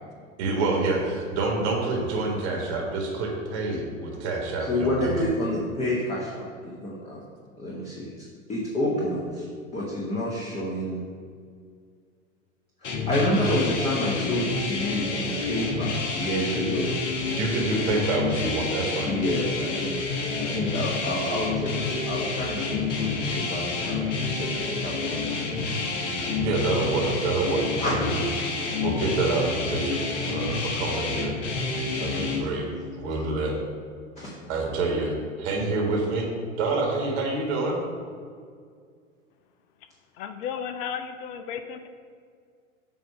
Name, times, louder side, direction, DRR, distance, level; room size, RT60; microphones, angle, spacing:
voice 1, 0.4-5.2 17.3-19.1 26.4-28.2 28.8-31.3 32.0-32.7 32.9-33.6 34.5-36.3 36.6-37.8, right 3 dB, 55° right, 0 dB, 1.6 m, -27 dB
voice 2, 4.7-7.2 7.6-8.1 8.5-9.5 9.7-11.0 12.8-16.9 19.0-20.0 20.4-25.6 27.8-27.9 32.0-32.6 34.2-34.8, left 1 dB, 15° left, -5 dB, 1.0 m, -29 dB
sound 1, 12.8-32.4, left 3 dB, 65° left, 1.2 m, -29 dB
voice 3, 40.2-41.9, left 7 dB, 50° left, 8 dB, 0.5 m, -34 dB
7.7 x 2.7 x 5.7 m, 2.1 s
hypercardioid pair, 95°, 39 cm